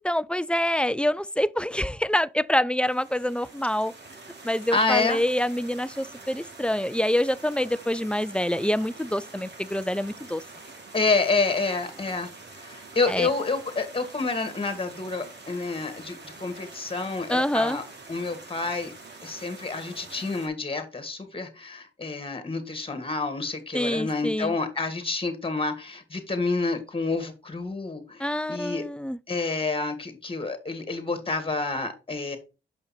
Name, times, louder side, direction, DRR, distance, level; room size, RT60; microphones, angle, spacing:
voice 1, 0.0-3.9 4.4-10.4 13.1-13.3 17.3-17.8 23.7-24.6 28.2-29.2, left 1 dB, 5° left, 0.4 m, -26 dB
sound 1, 2.8-20.5, right 3 dB, 60° right, 2.3 m, -46 dB
voice 2, 4.7-5.2 10.9-12.3 12.6-17.8 18.1-18.9 19.2-28.8 29.3-32.4, left 3 dB, 25° left, 2.1 m, -28 dB
6.7 x 5.4 x 4.3 m
cardioid pair, 65°, 21 cm